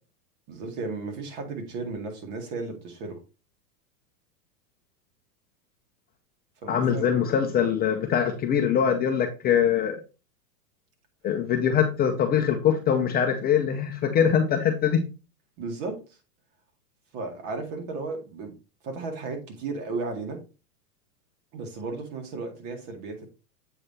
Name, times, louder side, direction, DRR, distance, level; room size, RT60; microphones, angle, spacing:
voice 1, 0.5-3.2 6.6-7.1 15.6-16.0 17.1-18.6 18.8-20.4 21.5-23.3, right 3 dB, 45° right, 2.1 m, -34 dB
voice 2, 6.7-10.0 11.2-15.1, left 8 dB, 20° left, 0.6 m, -23 dB
7.8 x 3.3 x 4.2 m
hypercardioid pair, 120°, 46 cm